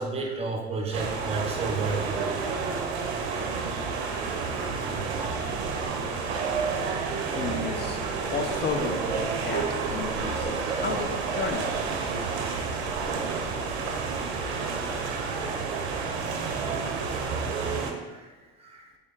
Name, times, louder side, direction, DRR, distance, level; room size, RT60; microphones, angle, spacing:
voice 1, 0.0-2.2 4.5-6.0 6.3-7.3 12.1-12.3 12.6-12.8 13.7-13.9 15.1-15.2 18.1-18.3 18.6-18.9, right 3 dB, 20° right, 1 dB, 0.8 m, -35 dB
sound 1, 0.9-17.9, right 5 dB, 80° right, 0.6 m, -30 dB
voice 2, 7.3-11.7 14.1-14.2 17.1-17.2, left 4 dB, 35° left, 4 dB, 0.5 m, -33 dB
3.3 x 3.2 x 3.1 m, 1.3 s
hypercardioid pair, 75°, 32 cm